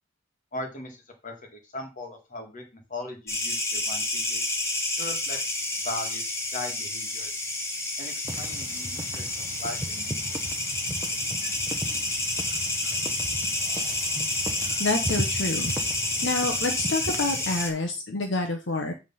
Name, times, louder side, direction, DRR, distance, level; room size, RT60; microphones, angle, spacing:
voice 1, 0.5-4.5 5.0-5.4 5.8-7.3 8.0-9.3 9.6-10.4, left 2 dB, 40° left, 3 dB, 2.1 m, -39 dB
sound 1, 3.3-17.7, left 2 dB, 15° left, 1.3 m, -29 dB
sound 2, 8.2-17.6, right 1 dB, 15° right, 0.8 m, -37 dB
voice 2, 14.8-15.7 16.2-18.9, left 2 dB, 60° left, 5 dB, 1.1 m, -28 dB
8.3 x 3.7 x 5.6 m, 0.27 s
head